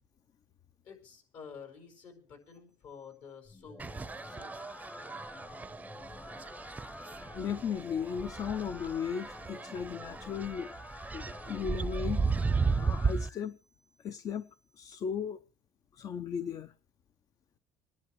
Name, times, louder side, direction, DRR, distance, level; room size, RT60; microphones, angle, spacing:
voice 1, 0.8-4.7, left 6 dB, 70° left, 4 dB, 5.2 m, -51 dB
sound 1, 3.4-13.4, left 2 dB, 15° left, 0.9 m, -48 dB
sound 2, 3.8-13.3, right 4 dB, 20° right, 0.6 m, -35 dB
voice 2, 7.3-10.7 11.1-12.2 12.7-13.6 14.0-14.5 14.8-15.4 15.9-16.7, left 7 dB, 50° left, 12 dB, 0.6 m, -36 dB
27.5 x 10.5 x 3.1 m, 0.34 s
supercardioid pair, 95°, 8 cm